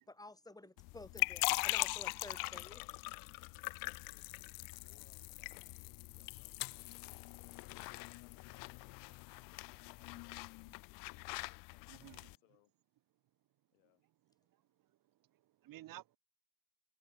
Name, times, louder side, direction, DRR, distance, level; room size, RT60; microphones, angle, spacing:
voice 1, 0.1-2.8, left 2 dB, 10° left, 2.0 m, -52 dB
sound 1, 0.8-12.4, left 26 dB, 55° left, 0.5 m, -41 dB
voice 2, 3.8-7.9 8.2-11.0 11.5-12.7 13.7-14.1, left 40 dB or more, 75° left, 7.5 m, -73 dB
voice 3, 11.9-12.3 15.3-16.2, right 15 dB, 50° right, 1.5 m, -53 dB
hypercardioid pair, 80°, 43 cm